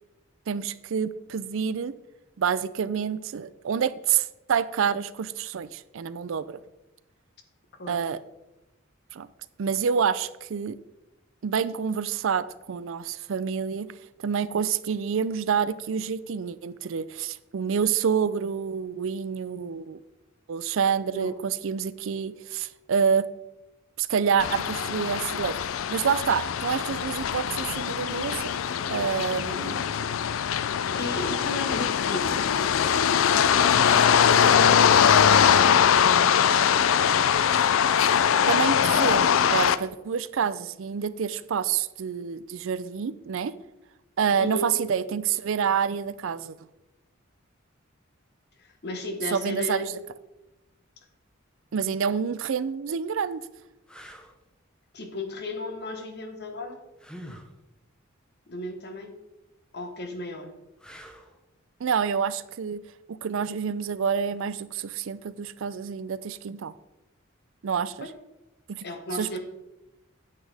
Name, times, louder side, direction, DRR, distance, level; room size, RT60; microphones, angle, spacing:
voice 1, 0.5-2.0 2.4-6.6 7.9-8.2 9.1-9.3 9.6-10.8 11.4-13.9 14.2-20.0 20.5-23.3 24.0-25.6 25.9-28.5 28.9-29.8 38.5-43.5 44.2-46.6 49.3-49.9 51.7-53.4 61.8-62.8 63.1-66.7 67.6-68.1 68.7-68.9 69.1-69.4, right 7 dB, 70° right, 16 dB, 0.4 m, -28 dB
sound 1, 24.4-39.8, left 8 dB, 70° left, 0.4 m, -22 dB
voice 2, 31.0-36.8 44.4-44.8 48.6-50.0 54.9-56.8 58.5-59.2 59.7-60.5 68.0-68.1 68.8-69.4, left 2 dB, 55° left, 5 dB, 1.3 m, -35 dB
sound 2, 53.9-54.3 57.0-57.5 60.8-61.4 64.4-64.5, equal, 5° left, 0.8 m, -45 dB
9.7 x 8.3 x 3.4 m, 0.97 s
head